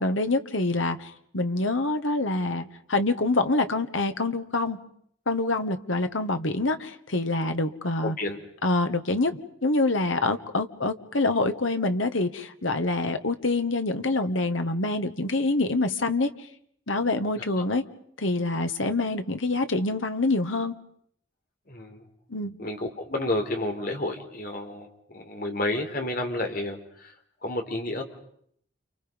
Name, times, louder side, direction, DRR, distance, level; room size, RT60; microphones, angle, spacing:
voice 1, 0.0-4.8 5.3-8.2 8.6-9.3 9.6-16.3 16.9-17.8 18.2-20.7 22.3-22.6, left 2 dB, 85° left, 1.8 m, -26 dB
voice 2, 8.0-8.4 21.7-22.0 22.6-24.9 25.1-27.1 27.4-28.0, left 1 dB, 45° left, 4.1 m, -30 dB
30.0 x 29.5 x 5.4 m
head